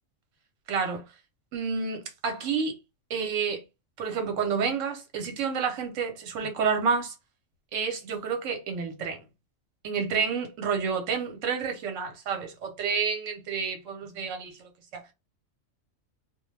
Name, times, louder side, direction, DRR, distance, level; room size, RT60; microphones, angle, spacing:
voice 1, 0.7-1.0 1.5-2.8 3.1-3.6 4.0-7.1 7.7-9.2 9.8-15.0, right 5 dB, 75° right, 1.1 m, -29 dB
2.3 x 2.2 x 3.1 m
omnidirectional pair, 1.3 m